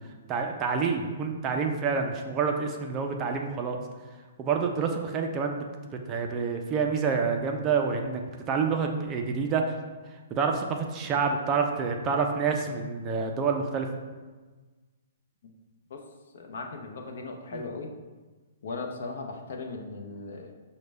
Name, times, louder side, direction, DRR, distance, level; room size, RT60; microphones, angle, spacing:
voice 1, 0.3-3.8 4.4-5.7 6.1-8.2 8.5-9.8 10.3-13.9 17.5-17.6, right 5 dB, 20° right, 3 dB, 0.3 m, -28 dB
voice 2, 16.3-17.9 18.6-20.5, left 3 dB, 65° left, 2 dB, 0.6 m, -38 dB
6.1 x 2.1 x 3.3 m, 1.3 s
hypercardioid pair, 160°, 0 cm